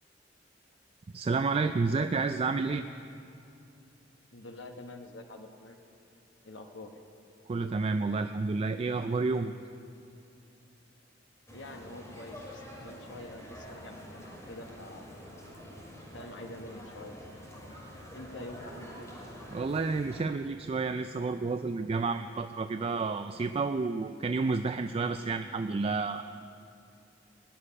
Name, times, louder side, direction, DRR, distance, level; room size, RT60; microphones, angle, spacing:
voice 1, 1.1-2.9 7.5-9.5 17.7-17.8 19.5-26.2, right 4 dB, 30° right, 9 dB, 0.3 m, -30 dB
voice 2, 4.3-5.8 6.4-6.9 11.5-15.1 16.1-17.2 18.1-19.1, left 2 dB, 70° left, 5 dB, 1.1 m, -46 dB
sound 1, 11.5-20.2, equal, 15° left, 3.3 m, -47 dB
18.5 x 6.5 x 9.9 m, 2.6 s
head